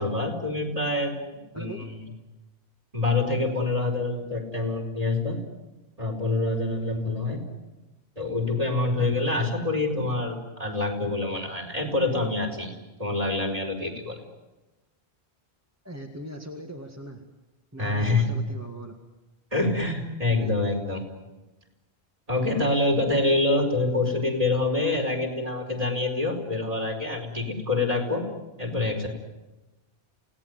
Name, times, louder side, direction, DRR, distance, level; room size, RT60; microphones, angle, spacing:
voice 1, 0.0-1.7 2.9-5.4 6.0-7.4 8.2-12.7 13.0-14.2 17.8-18.4 19.5-21.0 22.3-28.2 28.6-29.1, left 2 dB, 35° right, 1 dB, 4.7 m, -26 dB
voice 2, 1.5-2.2 15.8-17.3 17.7-18.9 20.4-20.6, right 1 dB, 15° right, 1 dB, 2.0 m, -40 dB
28.5 x 18.0 x 9.5 m, 1.1 s
omnidirectional pair, 1.1 m